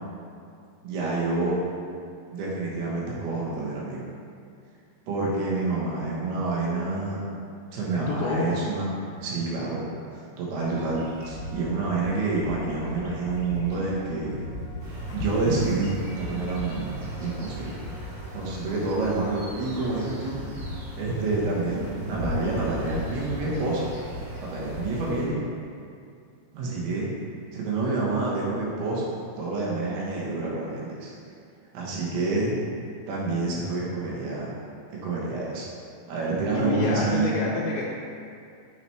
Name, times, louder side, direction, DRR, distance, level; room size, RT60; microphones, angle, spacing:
voice 1, 0.8-1.6 2.3-4.0 5.1-7.2 7.7-8.9 9.2-9.8 10.1-14.4 15.1-17.7 18.3-20.4 21.0-23.9 24.5-25.4 26.5-27.1 27.5-31.1 31.7-32.6 33.1-34.5 34.9-35.7 36.1-37.4, right 3 dB, 85° right, -5 dB, 3.2 m, -28 dB
voice 2, 8.1-8.5 36.5-37.8, left 4 dB, 90° left, -6 dB, 2.6 m, -28 dB
sound 1, 10.6-25.1, left 2 dB, 75° left, 2.5 m, -38 dB
sound 2, 14.8-25.3, right 1 dB, 60° right, 1.7 m, -41 dB
8.6 x 4.3 x 3.2 m, 2.4 s
omnidirectional pair, 4.4 m